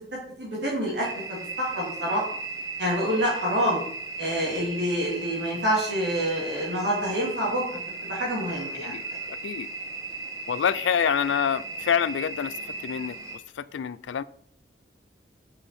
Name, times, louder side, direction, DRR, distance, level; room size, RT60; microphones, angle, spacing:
voice 1, 0.4-2.2 2.8-3.8 4.2-7.8 8.1-9.0, equal, 70° right, 2.6 m, -27 dB
sound 1, 1.0-13.4, right 3 dB, 20° right, 1.1 m, -36 dB
voice 2, 10.5-12.5 12.8-13.2 13.6-14.2, left 8 dB, 85° left, 0.4 m, -26 dB
7.5 x 5.4 x 4.2 m
head